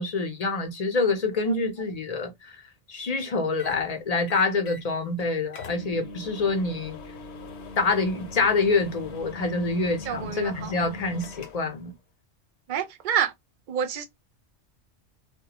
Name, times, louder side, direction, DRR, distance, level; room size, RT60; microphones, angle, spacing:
voice 1, 0.0-2.6 2.9-7.0 7.8-11.9, left 3 dB, 45° left, 0.5 m, -26 dB
sound 1, 3.6-3.8 4.3-4.9 5.2-5.3 5.5-11.8, left 2 dB, 75° left, 0.9 m, -41 dB
voice 2, 10.1-10.7 12.7-13.3 13.7-14.0, right 8 dB, 55° right, 0.5 m, -28 dB
2.2 x 2.1 x 2.8 m
omnidirectional pair, 1.2 m